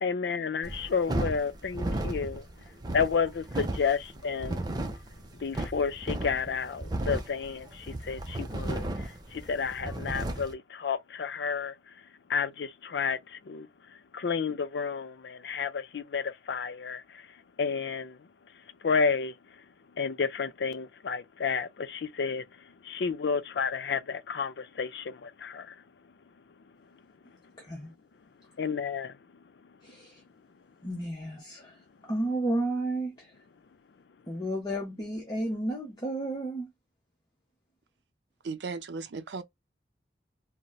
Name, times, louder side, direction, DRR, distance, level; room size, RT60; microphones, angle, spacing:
voice 1, 0.0-2.5 2.9-4.6 5.4-11.7 12.3-13.7 14.1-17.3 17.6-18.2 18.8-19.3 20.0-22.4 22.8-25.8 28.6-29.2, left 5 dB, 75° left, 0.4 m, -31 dB
sound 1, 0.6-10.5, right 1 dB, 25° right, 0.5 m, -34 dB
voice 2, 27.6-27.9 29.8-30.2 30.8-33.3 34.3-36.7, right 1 dB, 25° left, 0.8 m, -32 dB
voice 3, 38.4-39.4, right 4 dB, 85° right, 0.5 m, -36 dB
4.0 x 2.1 x 2.3 m
head